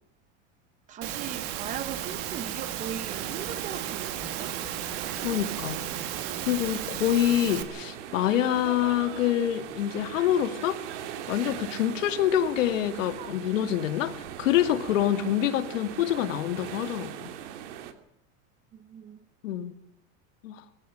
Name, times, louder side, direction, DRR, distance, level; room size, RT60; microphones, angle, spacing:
voice 1, 0.9-4.6 13.2-13.3 18.7-19.2, right 9 dB, 20° right, 1.0 m, -39 dB
Engine / Mechanisms, 1.0-7.6, right 11 dB, 40° right, 2.4 m, -34 dB
sound 1, 3.1-17.9, right 10 dB, 65° right, 2.7 m, -40 dB
voice 2, 5.2-5.8 6.5-10.8 11.3-14.1 14.4-17.3 19.4-19.8 20.4-20.6, left 11 dB, 80° left, 2.4 m, -26 dB
22.0 x 16.0 x 8.9 m
supercardioid pair, 175°, 38 cm